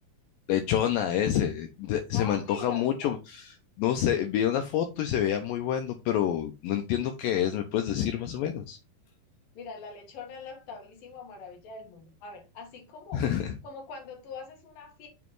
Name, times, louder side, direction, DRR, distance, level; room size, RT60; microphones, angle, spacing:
voice 1, 0.5-3.4 3.8-8.8 13.1-13.5, left 10 dB, 85° left, 6 dB, 2.0 m, -27 dB
voice 2, 2.1-3.2 9.5-13.3 13.6-15.1, left 4 dB, 65° left, 2 dB, 2.9 m, -43 dB
7.1 x 3.1 x 4.6 m, 0.27 s
omnidirectional pair, 4.6 m